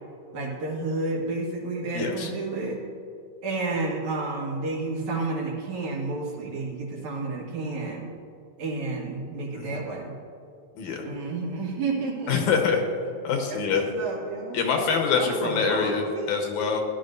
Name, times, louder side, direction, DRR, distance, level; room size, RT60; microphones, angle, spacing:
voice 1, 0.3-2.8 3.4-8.1 8.6-10.2 11.0-12.5 13.5-14.6 15.1-16.3, right 3 dB, 65° right, -2 dB, 3.0 m, -31 dB
voice 2, 1.9-2.3 9.5-9.8 10.8-11.0 12.3-12.8 13.2-13.8 14.5-16.8, left 5 dB, 75° left, 2 dB, 2.4 m, -25 dB
15.5 x 11.0 x 2.6 m, 2.6 s
omnidirectional pair, 3.6 m